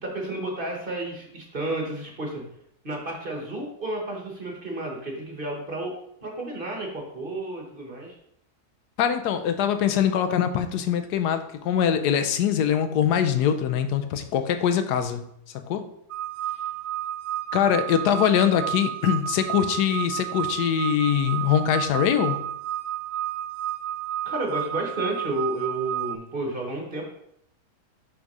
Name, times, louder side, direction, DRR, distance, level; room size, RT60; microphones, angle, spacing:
voice 1, 0.0-2.4 2.8-5.9 6.2-8.2 24.2-27.0, right 2 dB, 35° right, 1 dB, 1.3 m, -31 dB
voice 2, 9.0-15.3 15.5-15.9 17.5-22.4, left 9 dB, 80° left, 9 dB, 1.2 m, -23 dB
sound 1, 16.1-26.2, right 12 dB, 80° right, 1.1 m, -31 dB
5.9 x 3.7 x 5.3 m, 0.75 s
omnidirectional pair, 1.7 m